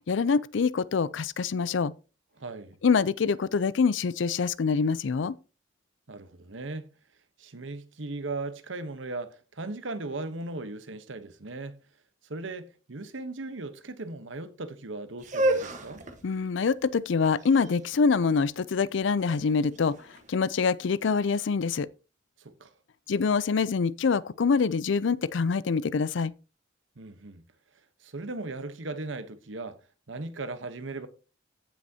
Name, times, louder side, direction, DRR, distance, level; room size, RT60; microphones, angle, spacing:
voice 1, 0.1-1.9 2.8-5.4 16.2-20.0 20.3-21.9 23.1-26.3, left 5 dB, 70° left, 0.4 m, -25 dB
voice 2, 2.4-2.8 6.1-6.9 7.4-11.8 12.3-16.0 22.4-22.7 27.0-27.4 28.0-29.8 30.1-31.1, right 2 dB, 75° right, 1.0 m, -37 dB
sound 1, 15.2-21.1, right 1 dB, 40° right, 1.3 m, -33 dB
15.0 x 6.1 x 2.8 m
head